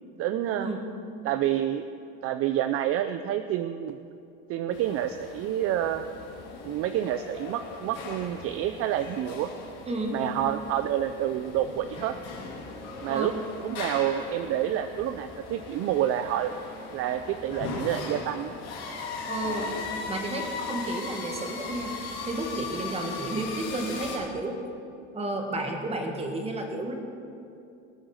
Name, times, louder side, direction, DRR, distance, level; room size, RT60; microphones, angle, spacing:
voice 1, 0.2-0.7 1.2-1.9 2.2-4.0 4.5-6.1 6.6-9.5 10.1-12.2 13.0-16.6 16.9-18.5, right 11 dB, 45° right, 10 dB, 0.5 m, -28 dB
sound 1, 4.7-24.2, left 3 dB, 55° left, 3.1 m, -38 dB
voice 2, 9.9-10.2 13.1-13.3 19.3-19.7 20.1-22.0 22.3-24.6 25.1-27.0, right 2 dB, 20° right, 3 dB, 1.8 m, -32 dB
19.0 x 8.0 x 6.4 m, 2.6 s
cardioid pair, 150°, 31 cm